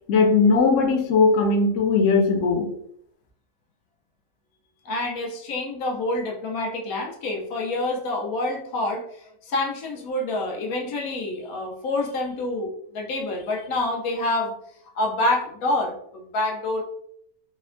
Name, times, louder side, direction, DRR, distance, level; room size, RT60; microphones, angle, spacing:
voice 1, 0.1-2.7, left 4 dB, 70° left, 2 dB, 0.9 m, -19 dB
voice 2, 4.8-14.5 15.0-16.8, left 2 dB, 90° left, 0 dB, 1.1 m, -27 dB
3.3 x 2.1 x 2.4 m, 0.69 s
omnidirectional pair, 1.5 m